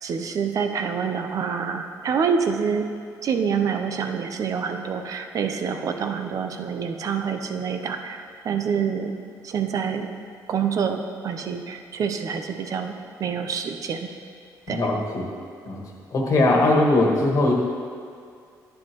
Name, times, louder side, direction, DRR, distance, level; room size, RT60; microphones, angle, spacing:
voice 1, 0.0-2.9 3.2-9.2 9.4-10.1 10.5-12.9 13.2-14.1 14.7-14.9, right 6 dB, 55° right, 6 dB, 0.7 m, -26 dB
voice 2, 14.7-15.2 15.7-15.8 16.1-17.5, left 2 dB, 50° left, -1 dB, 1.5 m, -20 dB
10.5 x 9.5 x 3.0 m, 2.2 s
cardioid pair, 120°, 7 cm